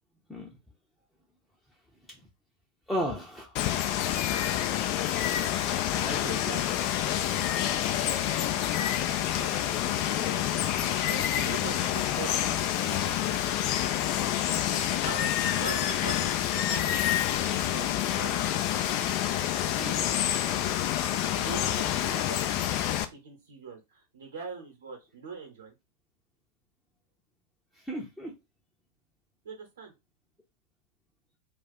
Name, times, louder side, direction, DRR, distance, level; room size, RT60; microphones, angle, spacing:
voice 1, 2.9-3.6 5.9-6.6 19.8-20.0 27.8-28.3, equal, 5° left, 0.7 m, -34 dB
Water, 3.5-23.0, left 11 dB, 45° left, 0.4 m, -28 dB
voice 2, 6.0-6.6 7.9-8.7 9.2-10.4 11.1-13.6 14.8-17.0 17.7-18.5 21.3-25.7 29.4-29.9, right 5 dB, 65° right, 1.1 m, -43 dB
2.4 x 2.4 x 4.1 m
figure-of-eight pair, 90°, 0 cm